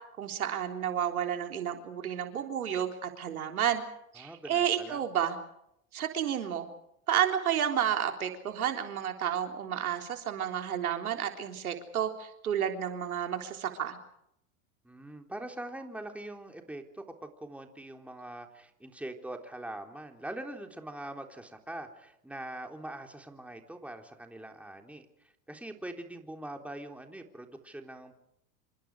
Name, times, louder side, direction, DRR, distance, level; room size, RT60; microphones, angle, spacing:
voice 1, 0.2-3.8 4.1-5.4 5.9-6.7 7.1-14.0, right 9 dB, 85° right, 4 dB, 3.7 m, -31 dB
voice 2, 4.2-5.0 14.8-25.1 25.5-28.2, right 1 dB, 5° right, 4 dB, 3.7 m, -43 dB
28.0 x 27.0 x 5.0 m, 0.78 s
hypercardioid pair, 100°, 42 cm